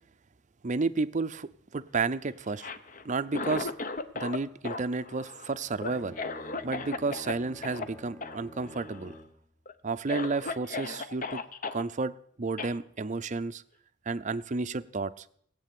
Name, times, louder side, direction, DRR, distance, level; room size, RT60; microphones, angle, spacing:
voice 1, 0.6-2.7 3.0-3.7 4.1-6.1 6.6-9.1 9.8-11.4 11.7-12.1 12.4-13.6 14.1-15.2, right 3 dB, 40° right, 14 dB, 0.6 m, -31 dB
Cough, 2.5-4.4 4.6-7.3 7.6-7.9 8.2-8.4 8.7-9.2 9.7-9.8 10.1-11.8 12.6-12.7, left 4 dB, 45° left, 0.9 m, -36 dB
Bowed string instrument, 5.6-9.4, left 1 dB, 10° left, 0.9 m, -48 dB
18.0 x 8.4 x 8.5 m, 0.67 s
head